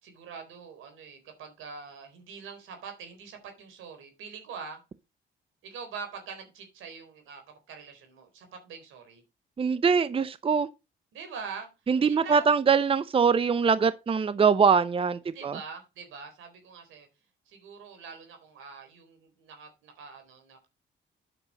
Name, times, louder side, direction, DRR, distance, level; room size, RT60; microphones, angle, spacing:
voice 1, 0.0-4.8 5.6-9.2 11.1-11.7 12.0-12.5 15.3-17.1 17.5-20.7, right 5 dB, 85° right, 4.0 m, -44 dB
voice 2, 9.6-10.7 11.9-15.6, right 6 dB, 30° right, 0.6 m, -23 dB
9.0 x 6.2 x 5.2 m
cardioid pair, 90°, 20 cm